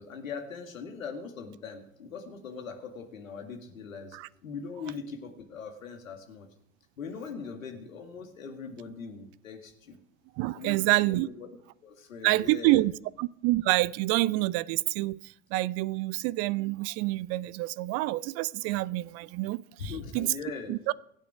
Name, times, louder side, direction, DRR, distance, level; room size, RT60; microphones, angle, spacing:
voice 1, 0.0-6.5 7.0-10.0 10.5-10.8 11.1-11.5 11.8-12.9 19.8-20.7, left 5 dB, 75° left, 2.3 m, -41 dB
voice 2, 10.4-11.3 12.2-12.9 13.2-20.3 20.7-20.9, right 19 dB, 40° right, 0.5 m, -27 dB
23.5 x 9.2 x 4.9 m
figure-of-eight pair, 65°, 41 cm